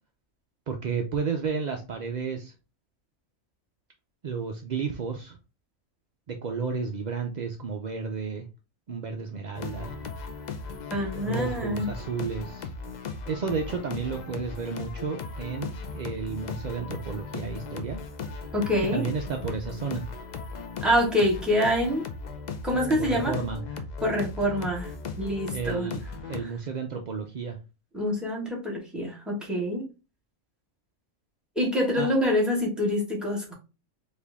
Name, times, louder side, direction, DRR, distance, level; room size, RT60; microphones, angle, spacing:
voice 1, 0.7-2.5 4.2-5.4 6.3-8.5 8.9-9.9 11.0-12.7 13.3-18.0 18.8-20.1 23.0-23.6 25.5-26.0 26.3-27.6 32.0-32.1, right 5 dB, 65° right, 0.4 m, -32 dB
sound 1, 9.5-26.4, left 4 dB, 60° left, 0.4 m, -37 dB
voice 2, 10.9-11.9 18.5-19.0 20.8-22.1 22.6-23.4 24.0-25.9 27.9-29.8 31.5-33.5, equal, ahead, 1.4 m, -26 dB
4.4 x 2.6 x 3.4 m
omnidirectional pair, 1.4 m